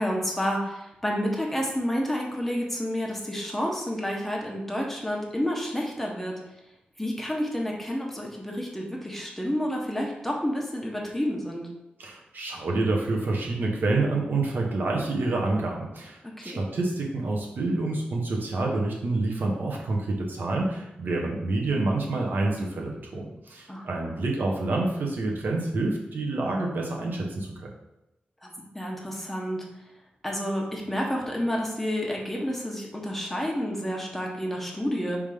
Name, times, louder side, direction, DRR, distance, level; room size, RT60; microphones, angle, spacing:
voice 1, 0.0-6.4 7.0-11.7 16.4-16.6 23.7-24.1 28.4-29.6 30.2-35.2, equal, 5° left, -1 dB, 1.4 m, -30 dB
voice 2, 12.0-27.7, right 2 dB, 70° right, -1 dB, 1.3 m, -28 dB
5.2 x 3.7 x 5.1 m, 0.94 s
wide cardioid pair, 85°, 3 cm